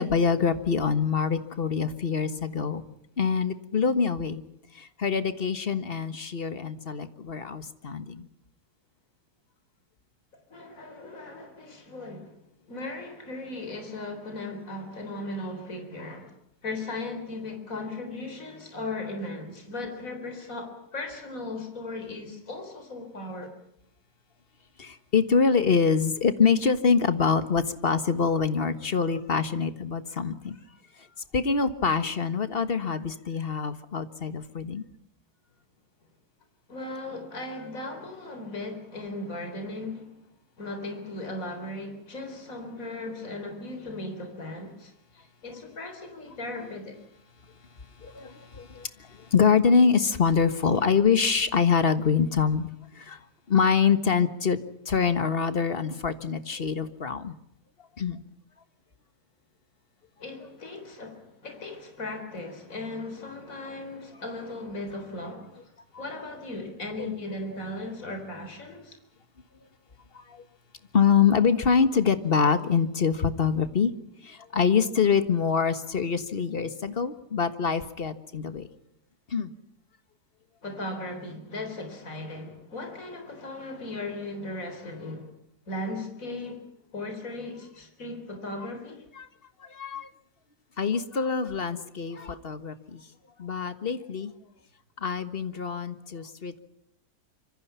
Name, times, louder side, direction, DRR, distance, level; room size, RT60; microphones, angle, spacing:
voice 1, 0.0-2.8 3.2-4.4 4.7-8.3 24.8-30.6 31.0-31.1 31.3-34.8 48.0-54.6 54.8-57.3 58.0-58.2 65.9-66.0 67.0-67.1 70.1-70.4 70.9-73.9 74.2-78.7 79.3-79.5 89.2-89.3 89.6-90.1 90.8-93.0 93.4-94.3 95.0-96.5, left 6 dB, 35° left, 1.5 m, -25 dB
voice 2, 10.5-12.3 12.7-16.3 16.6-23.5 36.7-40.1 40.6-47.0 60.2-65.7 66.0-69.0 80.6-85.3 85.7-86.6 86.9-89.0, left 2 dB, 50° left, 4.2 m, -37 dB
26.0 x 25.0 x 5.7 m
omnidirectional pair, 1.8 m